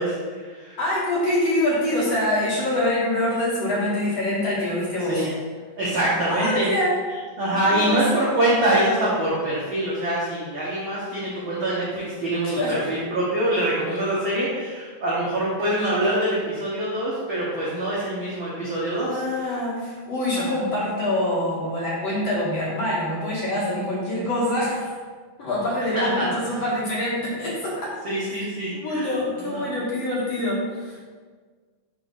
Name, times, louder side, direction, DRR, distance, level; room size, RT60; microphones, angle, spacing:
voice 1, 0.0-0.8 5.1-5.3 5.8-6.7 7.4-19.6 20.4-20.5 25.9-26.3 28.0-29.1 29.4-29.7, right 1 dB, 65° right, -7 dB, 1.3 m, -24 dB
voice 2, 0.8-5.2 6.3-6.9 7.7-8.0 12.4-12.9 19.1-25.0 25.4-27.9 28.7-31.1, left 1 dB, 50° left, -8 dB, 2.6 m, -25 dB
5.7 x 3.9 x 5.5 m, 1.5 s
omnidirectional pair, 3.8 m